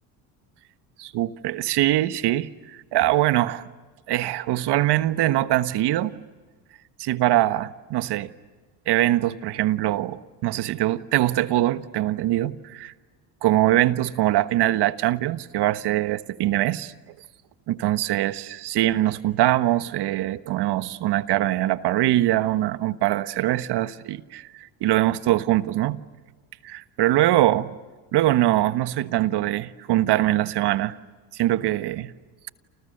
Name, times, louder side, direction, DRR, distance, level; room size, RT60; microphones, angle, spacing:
voice 1, 1.0-3.6 4.1-6.1 7.0-8.3 8.9-12.9 13.4-16.9 17.7-26.0 26.6-27.7 28.1-31.0 31.3-32.1, right 15 dB, 65° right, 1.4 m, -23 dB
29.5 x 29.0 x 6.7 m
supercardioid pair, 80°, 43 cm